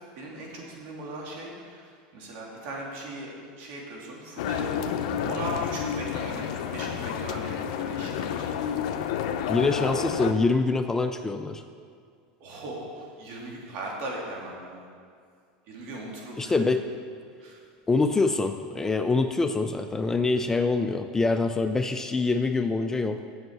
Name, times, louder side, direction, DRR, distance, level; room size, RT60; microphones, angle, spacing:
voice 1, 0.1-4.8 5.2-8.4 8.8-9.0 12.4-14.9 15.7-16.7 17.4-17.6, right 2 dB, 55° right, -2 dB, 2.9 m, -38 dB
sound 1, 4.4-10.3, left 8 dB, 70° left, 0.7 m, -30 dB
voice 2, 9.5-11.6 16.4-16.9 17.9-23.2, left 3 dB, 10° left, 8 dB, 0.4 m, -25 dB
8.0 x 7.2 x 7.9 m, 2.2 s
supercardioid pair, 135°, 4 cm